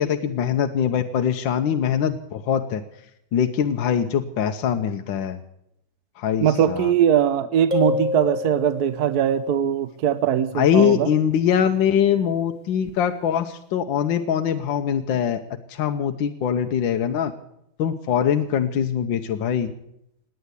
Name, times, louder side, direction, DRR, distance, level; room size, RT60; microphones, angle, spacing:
voice 1, 0.0-2.8 3.3-5.4 6.2-6.9 10.5-15.4 15.7-17.3 17.8-19.7, left 8 dB, 70° left, 5 dB, 1.5 m, -22 dB
voice 2, 6.4-11.1, right 9 dB, 60° right, 14 dB, 1.1 m, -21 dB
sound 1, 7.7-9.2, left 5 dB, 20° right, 2.3 m, -27 dB
18.5 x 9.5 x 8.1 m, 0.77 s
omnidirectional pair, 2.2 m